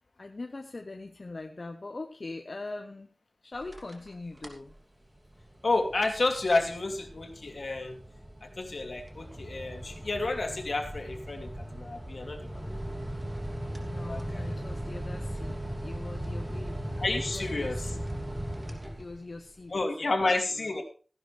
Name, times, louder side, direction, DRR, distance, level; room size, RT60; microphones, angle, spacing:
voice 1, 0.2-3.1 3.4-4.7 13.8-16.8 17.3-18.1 19.0-20.1 20.5-20.8, left 2 dB, 60° left, 5 dB, 1.0 m, -42 dB
sound 1, 3.5-4.1 4.4-4.7 5.2-19.4, right 1 dB, 30° right, 2.7 m, -38 dB
voice 2, 5.6-8.0 8.4-12.6 14.1-14.4 17.0-17.9 19.7-20.8, left 3 dB, 85° left, 3 dB, 2.6 m, -30 dB
16.0 x 11.0 x 3.4 m, 0.38 s
wide cardioid pair, 70°, 0 cm